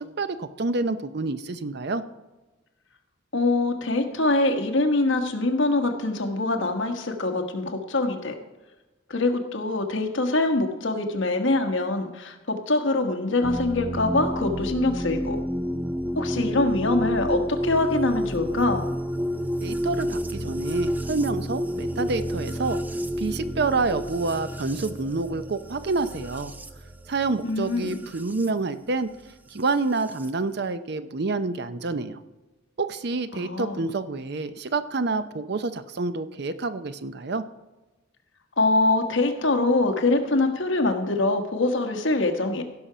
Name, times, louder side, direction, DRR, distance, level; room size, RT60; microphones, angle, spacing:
voice 1, 0.0-2.0 19.6-22.8 23.2-26.5 27.1-29.1 29.5-32.2 32.8-37.4, right 3 dB, 55° right, 12 dB, 0.6 m, -28 dB
voice 2, 3.3-8.3 9.1-15.4 16.1-18.8 27.4-28.0 33.3-33.8 38.6-42.6, left 2 dB, 65° left, 4 dB, 1.3 m, -24 dB
sound 1, 13.4-28.5 29.7-30.3, equal, 10° right, 0.4 m, -30 dB
16.5 x 5.7 x 5.0 m, 1.1 s
head